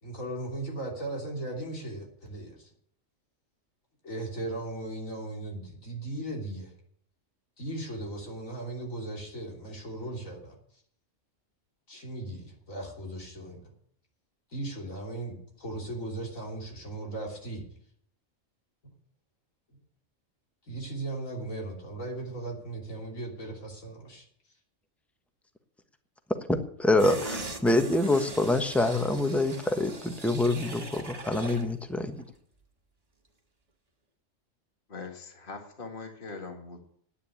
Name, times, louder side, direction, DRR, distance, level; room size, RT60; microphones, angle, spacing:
voice 1, 0.0-2.7 4.0-6.7 7.6-10.6 11.9-13.7 14.5-17.6 18.8-18.9 20.7-24.2, right 2 dB, 85° left, 0 dB, 3.6 m, -37 dB
voice 2, 26.5-32.2, left 2 dB, ahead, 7 dB, 1.0 m, -26 dB
sound 1, 27.0-31.7 32.1-32.2, right 2 dB, 30° right, 1.6 m, -40 dB
voice 3, 34.9-36.8, left 4 dB, 40° left, 3 dB, 2.0 m, -41 dB
10.0 x 9.6 x 8.6 m, 0.64 s
omnidirectional pair, 1.3 m